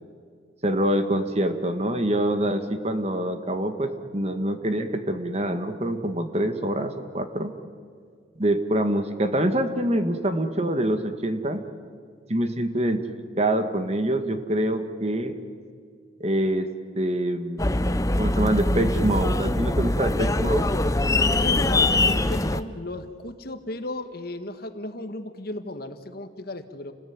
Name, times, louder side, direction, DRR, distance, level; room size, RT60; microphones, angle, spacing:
voice 1, 0.6-7.5 8.4-11.6 12.3-13.0 13.4-15.3 16.2-16.7 17.0-17.7 18.2-20.7, right 1 dB, 30° right, 8 dB, 1.8 m, -25 dB
sound 1, 17.6-22.6, left 2 dB, 15° left, 0.7 m, -22 dB
voice 2, 21.4-26.9, left 1 dB, 50° left, 9 dB, 1.7 m, -35 dB
29.5 x 20.5 x 9.7 m, 2.1 s
head